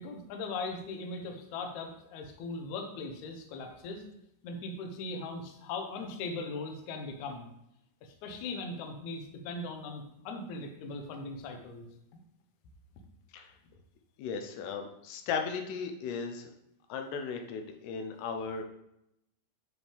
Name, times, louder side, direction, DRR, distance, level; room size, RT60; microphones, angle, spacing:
voice 1, 0.0-4.0 4.4-7.5 8.0-11.9 12.1-12.2, left 3 dB, 70° left, 3 dB, 1.9 m, -39 dB
voice 2, 14.2-16.5 16.9-18.6, left 5 dB, 90° left, 4 dB, 2.9 m, -36 dB
7.6 x 6.2 x 3.5 m, 0.80 s
omnidirectional pair, 4.6 m